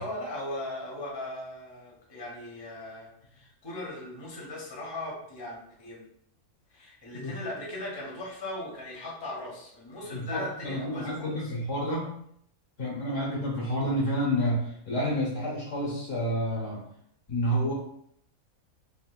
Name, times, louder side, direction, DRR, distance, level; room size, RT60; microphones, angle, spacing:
voice 1, 0.0-6.0 6.7-11.5, left 1 dB, 25° left, -4 dB, 0.6 m, -38 dB
voice 2, 10.1-12.2 12.8-16.8 17.3-17.7, equal, 60° left, -5 dB, 1.4 m, -29 dB
3.6 x 2.7 x 2.3 m, 0.69 s
omnidirectional pair, 1.5 m